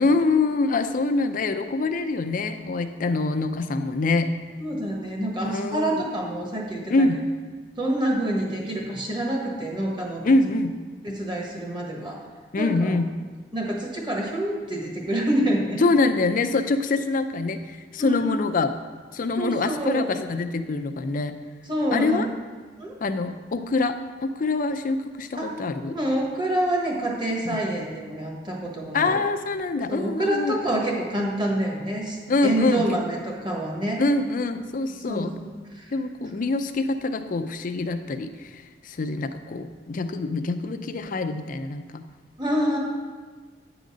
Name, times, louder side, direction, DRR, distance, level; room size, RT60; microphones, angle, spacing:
voice 1, 0.0-4.3 5.4-6.0 6.9-7.2 10.2-10.7 12.5-13.1 15.8-18.8 19.1-21.3 21.9-22.3 23.0-24.0 24.2-26.0 27.5-27.6 28.9-30.6 32.3-33.0 34.0-35.3 35.9-42.1, left 3 dB, 50° left, 9 dB, 0.5 m, -25 dB
voice 2, 4.6-7.1 7.8-10.2 11.0-12.2 12.5-12.9 13.5-15.8 18.0-18.2 19.4-20.1 21.7-22.3 22.8-23.0 25.3-25.5 25.9-29.2 29.9-34.0 35.1-35.5 35.7-35.9 42.4-42.8, right 1 dB, 25° right, -1 dB, 1.4 m, -27 dB
9.3 x 3.9 x 6.2 m, 1.4 s
head